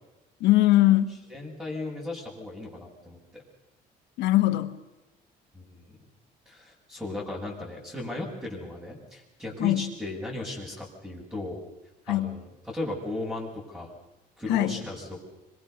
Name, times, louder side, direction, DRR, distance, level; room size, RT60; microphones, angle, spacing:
voice 1, 0.4-1.1 4.2-4.8 9.6-9.9 12.1-12.4 14.5-14.8, left 15 dB, 85° left, 9 dB, 1.7 m, -21 dB
voice 2, 1.3-3.4 5.5-6.0 6.5-11.6 12.1-13.9 14.4-15.2, left 2 dB, 5° right, -5 dB, 7.4 m, -36 dB
26.0 x 23.5 x 6.9 m, 1.0 s
cardioid pair, 110°, 17 cm